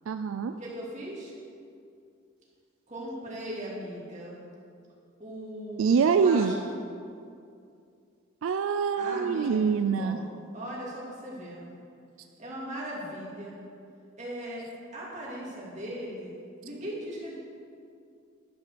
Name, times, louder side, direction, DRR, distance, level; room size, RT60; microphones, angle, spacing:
voice 1, 0.1-0.6 5.8-6.6 8.4-10.2, right 6 dB, 75° right, 9 dB, 0.3 m, -25 dB
voice 2, 0.6-1.3 2.9-4.4 5.2-6.9 9.0-10.2 10.5-11.8 12.4-13.6 14.2-14.7 14.9-16.3 16.6-17.4, right 1 dB, 35° right, -5 dB, 2.7 m, -38 dB
10.5 x 5.9 x 6.8 m, 2.4 s
head